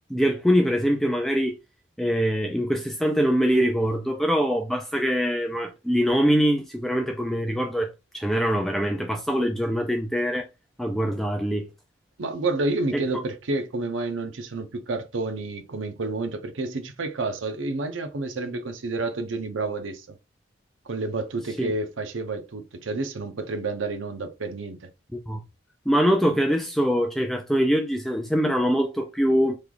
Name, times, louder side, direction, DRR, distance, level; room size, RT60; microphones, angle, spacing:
voice 1, 0.1-1.6 2.0-10.5 10.8-11.7 21.6-21.7 25.1-25.4 25.9-29.6, equal, ahead, 0.3 m, -23 dB
voice 2, 12.2-20.2 20.9-24.9, right 3 dB, 80° right, 0.6 m, -29 dB
3.2 x 2.3 x 3.7 m
head